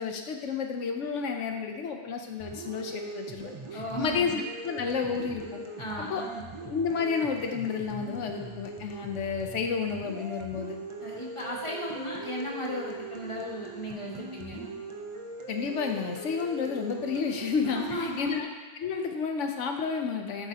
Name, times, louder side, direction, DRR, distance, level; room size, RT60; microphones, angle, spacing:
voice 1, 0.0-5.6 6.0-6.2 6.6-10.8 15.5-18.5 18.8-20.5, left 5 dB, 85° left, 4 dB, 1.1 m, -31 dB
sound 1, 2.4-18.4, right 3 dB, 30° right, 0.7 m, -41 dB
voice 2, 3.7-4.2 5.8-6.5 11.0-14.7 17.7-18.3, equal, 25° left, -4 dB, 1.8 m, -36 dB
12.0 x 8.0 x 2.9 m, 1.3 s
omnidirectional pair, 1.2 m